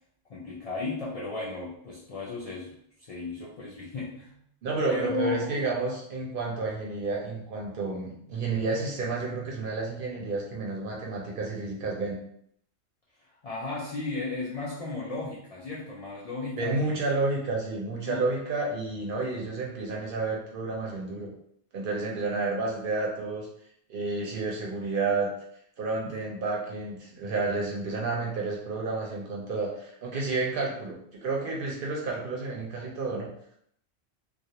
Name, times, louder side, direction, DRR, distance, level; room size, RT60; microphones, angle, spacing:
voice 1, 0.3-4.4 4.9-5.5 13.4-17.0 18.0-18.2 26.0-26.1, left 3 dB, 70° left, -6 dB, 0.3 m, -35 dB
voice 2, 4.6-12.2 16.6-21.3 21.7-23.5 23.9-25.3 25.8-33.3, right 3 dB, 60° right, -2 dB, 0.7 m, -30 dB
2.3 x 2.0 x 2.8 m, 0.70 s
omnidirectional pair, 1.1 m